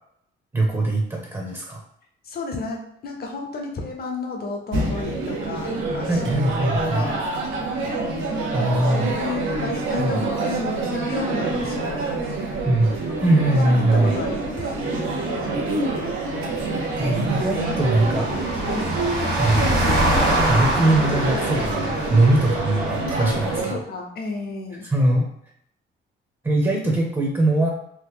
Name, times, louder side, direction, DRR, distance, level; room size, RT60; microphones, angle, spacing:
voice 1, 0.5-1.8 6.1-7.1 8.5-9.1 10.0-10.2 12.7-12.9 13.2-14.2 17.0-18.3 19.4-19.7 20.5-23.8 24.9-25.3 26.4-27.7, right 1 dB, 15° right, 0 dB, 0.7 m, -21 dB
voice 2, 2.2-6.2 6.6-7.3 9.0-12.0 13.5-14.7 18.6-18.9 23.2-23.4 23.7-24.8, left 3 dB, 50° left, 1 dB, 0.8 m, -32 dB
sound 1, 4.7-23.7, right 2 dB, 85° right, 0.7 m, -27 dB
sound 2, 5.0-23.6, right 1 dB, 70° right, 1.5 m, -28 dB
3.0 x 2.1 x 3.5 m, 0.73 s
cardioid pair, 90°, 20 cm